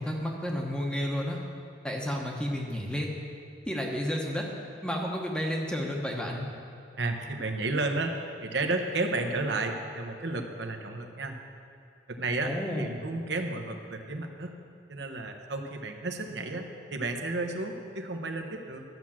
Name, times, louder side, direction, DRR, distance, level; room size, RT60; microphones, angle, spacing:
voice 1, 0.0-1.4 1.8-3.1 3.7-4.5 4.8-6.5 12.4-13.0, equal, 5° left, 0 dB, 1.0 m, -31 dB
voice 2, 7.0-8.1 8.4-11.4 12.1-14.6 14.9-18.8, right 2 dB, 65° right, 4 dB, 0.9 m, -32 dB
12.0 x 6.1 x 7.3 m, 2.4 s
head